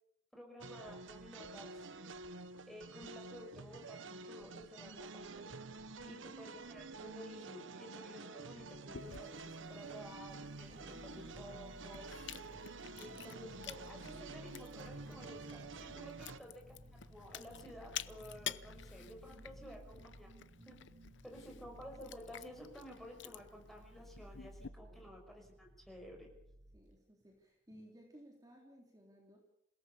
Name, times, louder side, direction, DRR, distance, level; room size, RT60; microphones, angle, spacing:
voice 1, 0.3-1.9 2.7-5.5 6.0-12.1 13.0-20.3 20.7-20.8 21.2-26.3, equal, ahead, 1 dB, 5.7 m, -53 dB
sound 1, 0.6-16.4, right 3 dB, 85° right, 1.1 m, -49 dB
Chewing mastication, 8.9-24.7, left 10 dB, 70° left, 0.8 m, -51 dB
voice 2, 9.8-10.3 10.9-11.1 19.7-19.8 24.9-25.1 26.7-29.4, equal, 20° right, 0 dB, 3.7 m, -59 dB
sound 2, 10.1-26.8 27.2-27.3 27.7-27.8, right 1 dB, 45° right, 5.1 m, -57 dB
27.5 x 17.5 x 7.0 m, 0.79 s
head